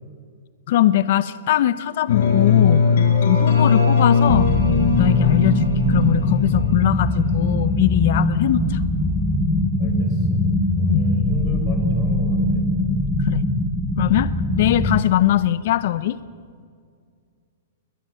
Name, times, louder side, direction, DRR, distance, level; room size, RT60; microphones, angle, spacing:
voice 1, 0.7-2.8 3.2-4.5 5.0-8.8 10.9-11.0 13.2-13.4 14.0-14.3 14.6-16.2, left 13 dB, 50° left, 16 dB, 0.7 m, -21 dB
sound 1, 2.1-8.0, left 5 dB, 75° left, 5.1 m, -19 dB
sound 2, 4.3-15.0, left 1 dB, 5° left, 1.2 m, -21 dB
voice 2, 9.8-10.4 10.7-12.6, left 4 dB, 30° left, 4 dB, 5.0 m, -36 dB
20.5 x 20.5 x 8.9 m, 2.1 s
hypercardioid pair, 160°, 0 cm